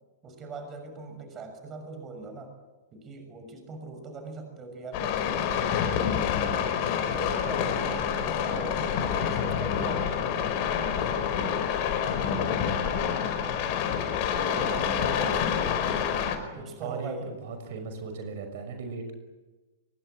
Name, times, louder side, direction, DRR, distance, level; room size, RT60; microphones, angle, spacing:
voice 1, 0.2-2.5 2.9-6.4 7.0-11.2 14.3-15.8 16.5-17.3, right 3 dB, 25° right, 6 dB, 6.5 m, -41 dB
sound 1, 4.9-16.4, left 8 dB, 40° left, 4.8 m, -27 dB
voice 2, 8.9-9.3 16.4-19.2, right 4 dB, 55° right, 6 dB, 6.2 m, -38 dB
25.5 x 23.5 x 8.9 m, 1.2 s
figure-of-eight pair, 105°, 0 cm